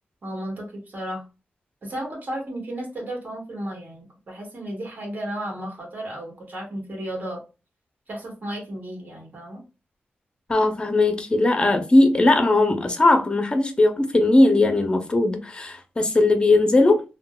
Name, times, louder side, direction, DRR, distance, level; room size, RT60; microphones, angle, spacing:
voice 1, 0.2-1.2 1.8-7.4 8.1-9.6, right 1 dB, 50° right, 1.3 m, -33 dB
voice 2, 10.5-17.0, left 2 dB, 25° left, 0.6 m, -19 dB
3.7 x 2.1 x 2.2 m
wide cardioid pair, 95°, 4 cm